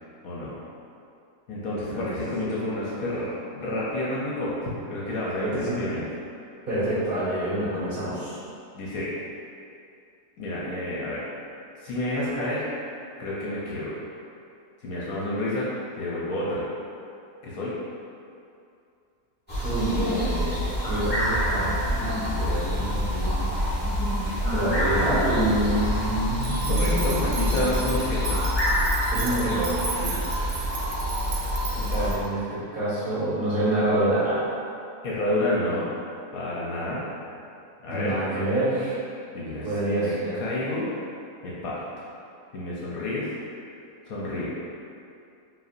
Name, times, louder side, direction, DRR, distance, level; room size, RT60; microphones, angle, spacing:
voice 1, 0.2-0.6 1.5-6.0 8.7-9.1 10.4-11.2 11.8-12.7 13.2-13.9 14.8-15.7 15.9-16.6 17.4-17.7 26.7-28.4 30.0-30.2 35.0-35.9 36.3-37.0 37.8-38.2 39.3-40.9 41.4-42.1 42.5-43.3 44.1-44.5, left 1 dB, 65° left, -7 dB, 1.1 m, -29 dB
voice 2, 5.4-5.8 6.7-8.4 19.6-23.5 24.5-27.2 29.1-29.7 31.7-34.4 37.9-39.0 39.6-40.4, right 1 dB, 35° right, -13 dB, 1.6 m, -27 dB
sound 1, 19.5-32.1, equal, 5° left, 1.3 m, -26 dB
sound 2, 26.4-32.2, right 4 dB, 80° right, 1.2 m, -36 dB
5.2 x 3.0 x 2.5 m, 2.5 s
omnidirectional pair, 1.7 m